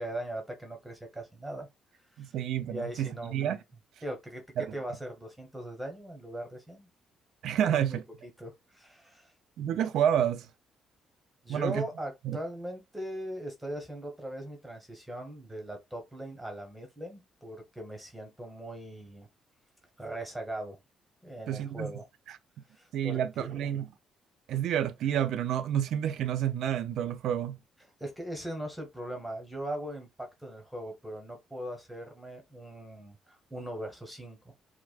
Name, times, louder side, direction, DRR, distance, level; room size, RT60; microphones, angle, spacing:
voice 1, 0.0-1.7 2.1-2.3 2.7-3.4 4.0-6.9 7.7-9.3 11.4-19.3 20.0-20.8 21.2-22.1 22.7-23.7 27.8-34.4, right 1 dB, 5° right, 1.1 m, -40 dB
voice 2, 2.2-3.6 4.6-4.7 7.4-8.0 9.6-10.5 11.5-11.8 12.2-12.4 21.5-21.9 22.9-23.9 24.5-27.6, right 10 dB, 75° right, 0.4 m, -29 dB
4.7 x 2.1 x 2.3 m
cardioid pair, 95°, 0 cm